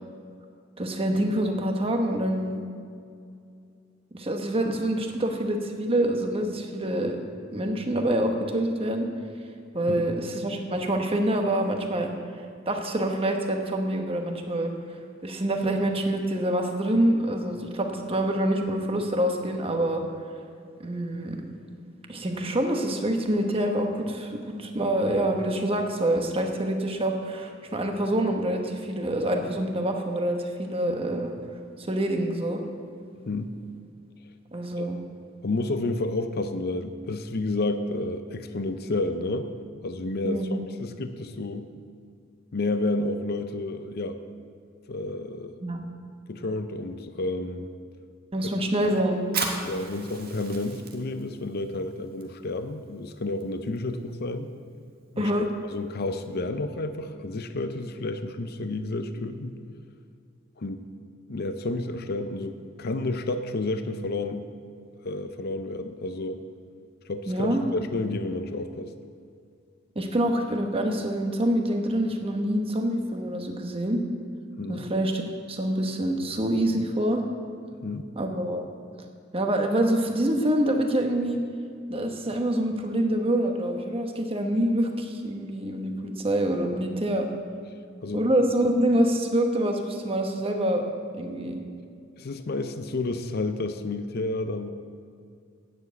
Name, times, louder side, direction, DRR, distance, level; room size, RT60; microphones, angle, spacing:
voice 1, 0.8-2.6 4.1-7.2 7.5-9.1 9.7-12.1 12.7-14.7 15.2-20.0 20.8-21.4 22.1-31.3 31.8-32.6 34.5-35.0 40.2-40.6 45.6-45.8 48.3-49.3 55.2-55.5 67.3-67.6 69.9-74.0 74.7-75.2 75.5-77.2 78.2-78.6 79.3-81.4 81.9-87.3 88.1-90.8 91.2-91.6, right 1 dB, 30° right, 3 dB, 1.1 m, -26 dB
voice 2, 33.2-33.6 34.8-34.9 35.4-39.5 39.8-41.7 42.5-44.2 44.9-45.5 46.3-47.7 49.7-54.5 55.1-55.3 55.7-59.5 60.6-60.8 61.3-64.5 65.0-66.4 67.1-68.9 74.6-74.9 77.8-78.1 88.0-88.3 92.2-94.7, left 2 dB, 50° left, 9 dB, 0.6 m, -30 dB
Fire, 49.2-56.4, right 4 dB, 50° right, 1.5 m, -39 dB
9.7 x 7.2 x 8.1 m, 2.3 s
head